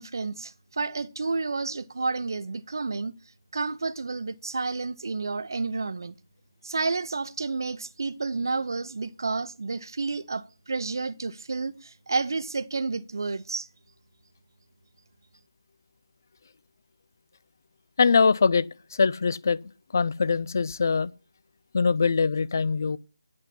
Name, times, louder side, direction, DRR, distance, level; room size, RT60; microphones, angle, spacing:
voice 1, 0.0-3.1 3.5-6.1 6.6-13.7, right 3 dB, 55° right, 0.7 m, -30 dB
voice 2, 18.0-19.6 19.9-21.1 21.7-23.0, left 5 dB, 45° left, 0.5 m, -23 dB
9.7 x 8.6 x 5.8 m
figure-of-eight pair, 160°, 2 cm